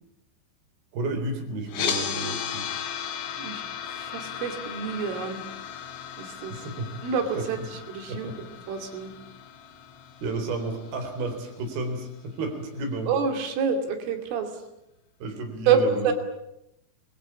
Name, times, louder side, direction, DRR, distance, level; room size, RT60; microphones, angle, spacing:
voice 1, 0.9-2.7 6.5-6.9 7.4-7.5 8.1-8.4 10.2-13.1 15.2-16.1, right 2 dB, 55° right, 5 dB, 5.5 m, -32 dB
sound 1, 1.7-11.8, left 7 dB, 75° left, 4.4 m, -36 dB
voice 2, 3.9-5.4 6.2-6.6 7.0-8.3 8.7-9.1 13.1-14.5 15.7-16.1, right 6 dB, 90° right, 6 dB, 5.2 m, -27 dB
27.0 x 21.5 x 8.5 m, 0.83 s
omnidirectional pair, 5.5 m